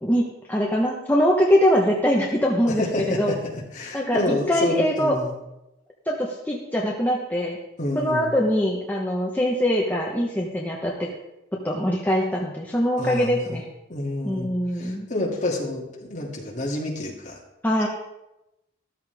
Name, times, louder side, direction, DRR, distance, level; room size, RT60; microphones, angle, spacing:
voice 1, 0.0-2.8 3.2-3.4 3.9-5.2 6.1-7.6 7.9-11.1 11.6-13.6 14.2-15.1 17.6-17.9, equal, 10° left, -3 dB, 1.2 m, -23 dB
voice 2, 2.8-3.4 3.7-5.3 7.8-8.3 13.0-13.6 13.9-17.4, left 2 dB, 40° left, -2 dB, 2.8 m, -28 dB
13.5 x 13.5 x 3.6 m, 0.91 s
head